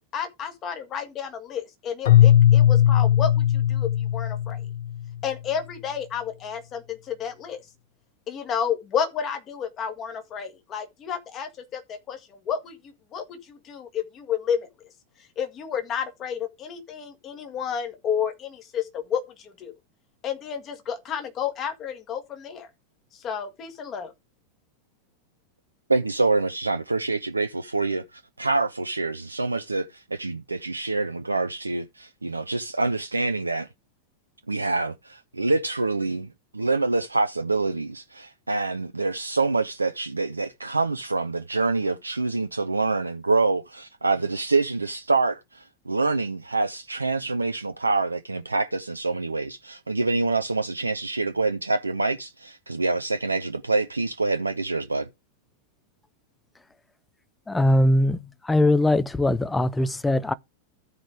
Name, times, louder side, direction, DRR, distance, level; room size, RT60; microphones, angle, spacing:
voice 1, 0.1-4.6 5.2-7.6 8.3-12.8 13.1-14.7 15.4-19.7 20.2-22.7 23.1-24.1, left 8 dB, 30° left, 1.9 m, -31 dB
Keyboard (musical), 2.0-5.2, left 11 dB, 60° left, 1.1 m, -18 dB
voice 2, 25.9-28.0 28.4-33.7 34.5-36.3 36.5-55.1, right 3 dB, 80° right, 0.4 m, -26 dB
voice 3, 57.5-60.3, left 1 dB, 10° left, 0.6 m, -21 dB
13.5 x 5.1 x 3.5 m
figure-of-eight pair, 90°, 0 cm